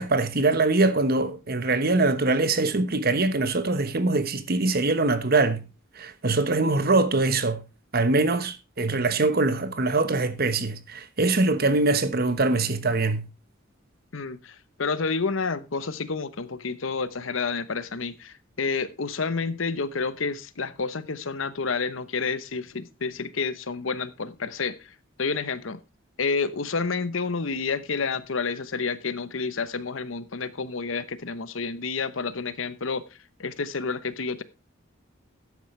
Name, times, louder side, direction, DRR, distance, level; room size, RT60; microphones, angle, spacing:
voice 1, 0.0-5.6 6.0-7.6 7.9-13.3, right 3 dB, 50° right, 1.2 m, -23 dB
voice 2, 14.1-25.8 26.2-33.0 33.4-34.4, left 4 dB, 75° left, 0.9 m, -29 dB
13.0 x 9.4 x 3.2 m
head